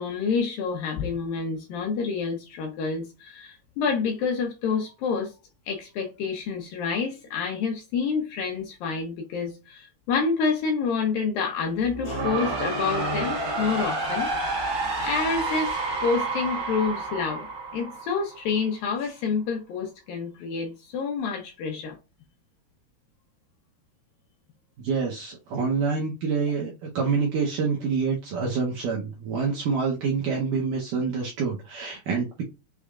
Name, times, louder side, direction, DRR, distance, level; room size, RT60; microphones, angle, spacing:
voice 1, 0.0-5.3 5.7-14.3 15.0-17.5 17.7-22.0, left 5 dB, 75° left, 2.3 m, -28 dB
sound 1, 11.8-18.7, right 2 dB, 30° right, 1.9 m, -29 dB
voice 2, 24.8-32.4, right 5 dB, 75° right, 2.1 m, -27 dB
6.5 x 3.4 x 2.4 m
omnidirectional pair, 4.8 m